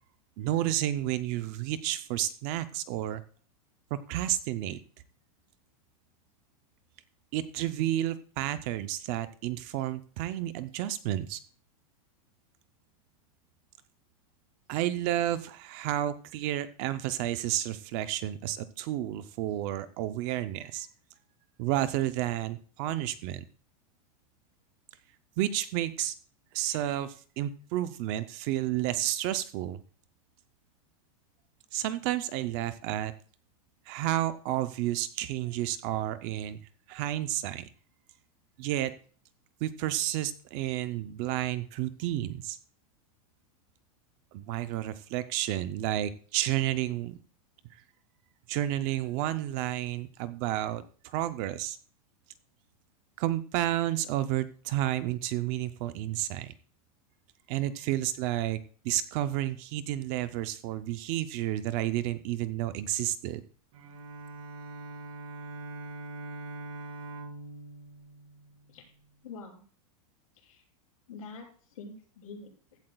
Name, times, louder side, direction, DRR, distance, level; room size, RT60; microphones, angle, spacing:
voice 1, 0.4-3.2 4.1-4.8 7.3-11.4 14.7-20.9 21.6-23.4 25.4-26.1 26.5-29.8 31.7-33.1 33.9-36.6 36.9-37.7 38.6-38.9 39.6-42.6 44.3-47.2 48.5-51.8 53.2-56.5 57.5-63.4, right 13 dB, 25° right, 13 dB, 0.4 m, -31 dB
Bowed string instrument, 63.7-69.0, right 2 dB, 70° right, 2.0 m, -43 dB
voice 2, 69.2-69.6 70.3-70.6 71.1-72.8, left 4 dB, 75° left, -3 dB, 6.2 m, -46 dB
15.5 x 11.5 x 2.2 m, 0.43 s
supercardioid pair, 180°, 18 cm